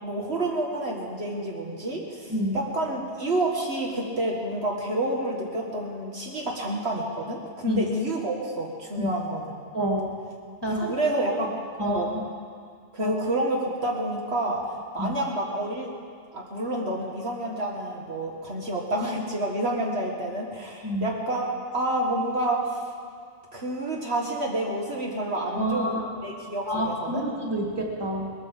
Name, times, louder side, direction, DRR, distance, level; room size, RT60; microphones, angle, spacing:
voice 1, 0.0-9.5 10.8-11.5 11.8-12.1 12.9-14.6 14.9-15.9 16.3-21.5 21.7-22.8 23.5-27.3, right 1 dB, 60° right, -2 dB, 1.9 m, -29 dB
voice 2, 9.7-10.2 10.6-10.9 11.8-12.2 13.0-13.1 15.0-15.1 20.8-21.1 25.5-26.1 26.7-28.3, equal, 20° right, -1 dB, 2.3 m, -28 dB
20.5 x 9.5 x 7.2 m, 2.2 s
omnidirectional pair, 1.2 m